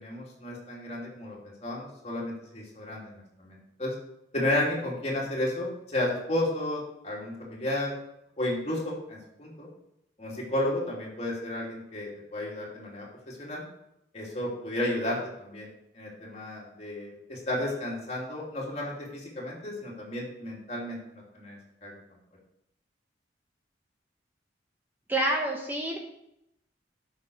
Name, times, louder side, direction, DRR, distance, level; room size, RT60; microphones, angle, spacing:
voice 1, 0.0-3.9 4.3-7.9 8.4-9.7 10.2-13.6 14.1-15.7 15.9-21.6 21.8-21.9, left 1 dB, 35° left, -4 dB, 3.0 m, -33 dB
voice 2, 25.1-26.0, right 1 dB, 10° right, 0 dB, 1.0 m, -27 dB
8.5 x 6.3 x 6.4 m, 0.82 s
head